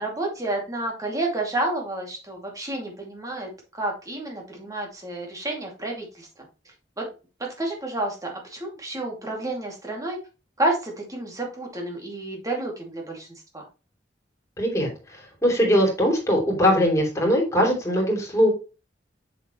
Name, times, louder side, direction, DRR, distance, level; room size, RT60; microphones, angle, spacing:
voice 1, 0.0-6.3 7.0-7.1 7.6-10.2 10.6-13.6, right 2 dB, 20° right, 1 dB, 2.4 m, -30 dB
voice 2, 14.6-18.5, equal, 15° left, -1 dB, 3.2 m, -21 dB
7.3 x 6.8 x 3.0 m, 0.32 s
head